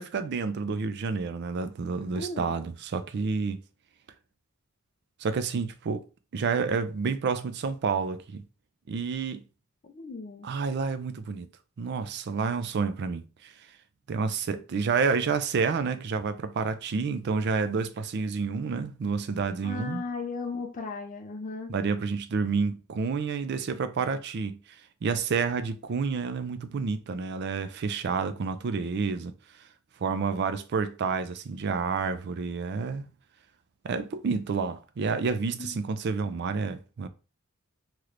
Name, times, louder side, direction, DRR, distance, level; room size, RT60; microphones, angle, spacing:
voice 1, 0.0-3.6 5.2-6.0 6.3-8.4 8.9-9.4 10.4-11.5 11.8-13.5 14.1-20.0 21.7-24.6 25.0-29.3 30.0-33.1 33.8-37.1, right 5 dB, 50° right, 0.4 m, -29 dB
voice 2, 2.1-2.5 9.8-10.5 19.6-21.7 35.6-35.8, left 3 dB, 35° left, 0.4 m, -36 dB
3.2 x 3.0 x 2.5 m
head